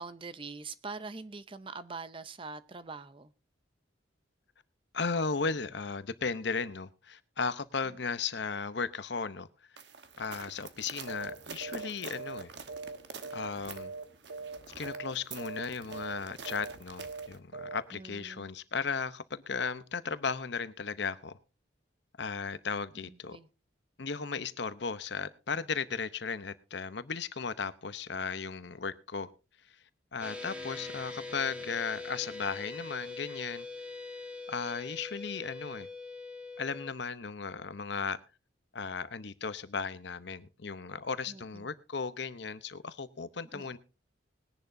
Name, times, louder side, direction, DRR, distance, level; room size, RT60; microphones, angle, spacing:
voice 1, 0.0-3.3 17.9-18.5 23.0-23.5 41.3-41.7 43.5-43.7, right 4 dB, 25° right, 0.6 m, -44 dB
voice 2, 4.9-9.8 10.2-12.5 13.3-13.9 14.7-21.3 22.2-23.4 24.0-29.3 29.7-29.8 30.1-33.7 34.5-35.9 36.6-38.2 38.7-43.8, left 5 dB, 60° left, 0.8 m, -36 dB
sound 1, 9.8-17.4, right 5 dB, 60° right, 1.2 m, -48 dB
sound 2, 11.1-11.4 11.6-11.9 12.1-13.5 13.8-14.0 14.3-14.6 14.8-15.1 15.4-15.7 15.9-16.2 16.5-16.7 17.0-17.3 17.5-17.8, right 4 dB, 85° right, 1.4 m, -41 dB
sound 3, 30.2-36.9, left 3 dB, 5° right, 1.3 m, -42 dB
20.5 x 10.5 x 2.6 m
head